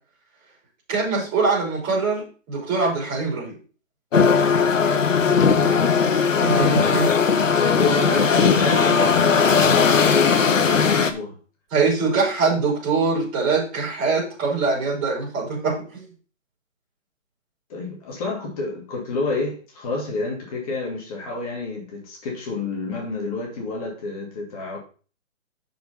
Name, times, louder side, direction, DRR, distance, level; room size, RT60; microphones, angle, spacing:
voice 1, 0.9-3.6 6.4-7.1 11.7-16.0, right 4 dB, 20° right, 4.7 m, -23 dB
sound 1, 4.1-11.1, left 6 dB, 70° left, 1.4 m, -18 dB
voice 2, 4.1-4.5 5.2-5.7 7.6-11.3 17.7-24.8, left 3 dB, 25° left, 2.3 m, -28 dB
6.7 x 6.6 x 5.5 m
hypercardioid pair, 155°, 40 cm